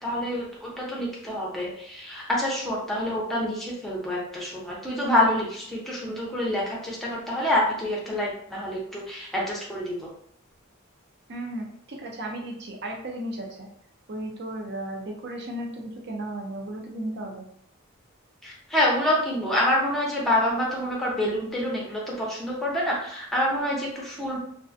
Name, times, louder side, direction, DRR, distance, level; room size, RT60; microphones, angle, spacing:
voice 1, 0.0-10.1 18.4-24.4, left 1 dB, ahead, -4 dB, 0.6 m, -27 dB
voice 2, 11.3-13.7 14.1-17.5, right 1 dB, 55° right, 1 dB, 0.5 m, -35 dB
2.4 x 2.1 x 2.5 m, 0.65 s
head